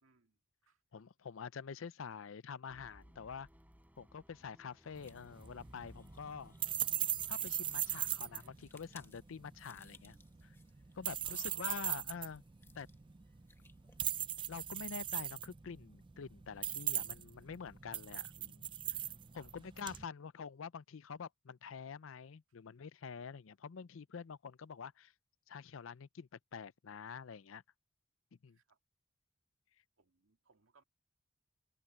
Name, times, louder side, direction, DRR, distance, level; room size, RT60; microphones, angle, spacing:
voice 1, 0.0-0.8 11.2-11.8 19.3-19.5 28.5-28.8 30.0-30.8, right 4 dB, 80° right, 2.2 m, -68 dB
voice 2, 0.9-3.5 4.0-6.5 7.3-10.2 10.4-10.6 10.9-12.4 12.8-12.9 14.5-19.0 19.3-25.1 25.5-27.6 28.4-28.6, left 6 dB, 75° left, 0.5 m, -47 dB
sound 1, 2.7-8.5, equal, 10° right, 4.0 m, -61 dB
sound 2, 4.8-14.5, left 3 dB, 10° left, 1.4 m, -65 dB
sound 3, 5.0-20.0, right 10 dB, 25° right, 0.5 m, -40 dB
head